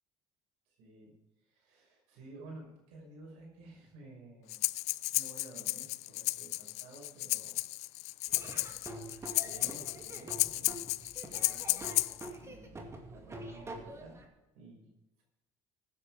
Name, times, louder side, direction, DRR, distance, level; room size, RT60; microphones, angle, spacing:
voice 1, 0.7-4.6 5.1-7.6 8.2-8.8 9.4-10.8 11.2-11.8 12.4-12.8 13.1-14.2 14.5-14.9, right 2 dB, 85° right, -1 dB, 5.9 m, -53 dB
Breathing, 4.5-12.3, left 19 dB, 70° left, 0.4 m, -33 dB
Laughter / Drum, 8.3-14.3, right 2 dB, 25° right, 2.3 m, -46 dB
15.5 x 9.8 x 4.9 m, 1.1 s
cardioid pair, 105°, 12 cm